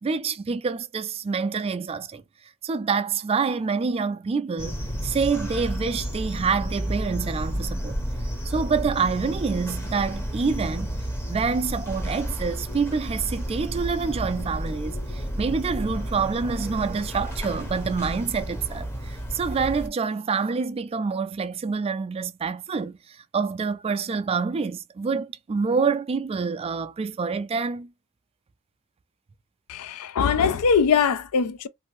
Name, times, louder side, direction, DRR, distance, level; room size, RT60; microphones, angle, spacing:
voice 1, 0.0-2.2 2.6-8.0 8.4-11.0 11.3-27.9, right 5 dB, 25° right, 0.3 m, -27 dB
sound 1, 4.6-19.9, equal, 10° left, 0.7 m, -31 dB
voice 2, 29.7-31.7, left 6 dB, 85° left, 0.4 m, -22 dB
2.6 x 2.5 x 3.1 m
head